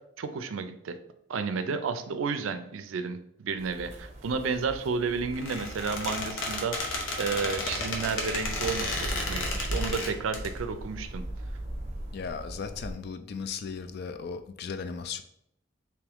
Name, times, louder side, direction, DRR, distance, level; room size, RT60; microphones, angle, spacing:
voice 1, 0.2-1.0 1.3-11.2, right 5 dB, 80° right, 9 dB, 0.4 m, -32 dB
sound 1, 3.6-12.9, right 1 dB, 35° right, 0.7 m, -39 dB
Squeak, 5.3-10.5, left 2 dB, 75° left, 0.8 m, -33 dB
voice 2, 12.1-15.2, left 5 dB, 55° left, 9 dB, 0.3 m, -36 dB
3.5 x 3.1 x 3.5 m, 0.74 s
head